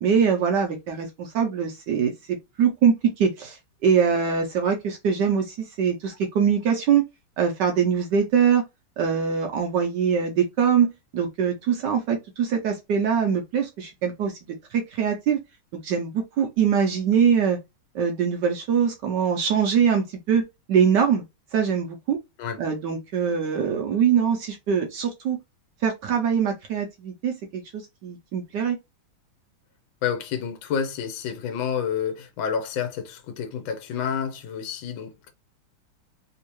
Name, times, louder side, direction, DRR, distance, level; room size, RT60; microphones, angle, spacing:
voice 1, 0.0-7.0 7.4-8.6 9.0-14.4 14.7-15.4 15.8-17.6 17.9-20.4 20.7-21.2 21.5-22.2 22.6-25.4 25.8-28.8, right 7 dB, 70° right, 1.1 m, -23 dB
voice 2, 30.0-35.3, left 7 dB, 70° left, 1.4 m, -29 dB
3.5 x 2.8 x 2.9 m
omnidirectional pair, 2.3 m